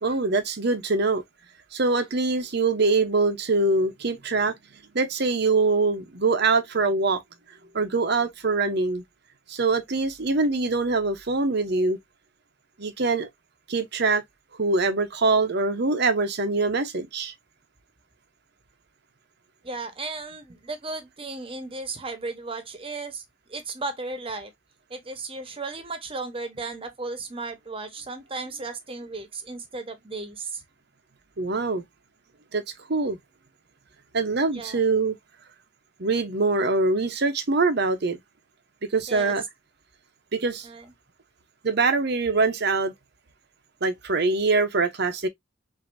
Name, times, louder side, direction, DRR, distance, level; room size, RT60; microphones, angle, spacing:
voice 1, 0.0-1.2 1.7-4.6 4.9-7.2 7.7-9.0 9.5-12.0 12.8-13.3 13.7-14.2 14.6-17.3 31.4-31.8 32.5-32.6 32.9-33.2 34.1-35.2 36.0-38.2 38.9-39.4 40.3-40.7 41.6-42.9 43.8-45.3, right 3 dB, 60° right, 0.9 m, -23 dB
voice 2, 19.6-23.2 23.5-24.5 24.9-30.6 34.5-34.8 39.1-39.3 40.6-40.9, right 3 dB, 30° right, 1.0 m, -35 dB
6.1 x 2.8 x 2.6 m
head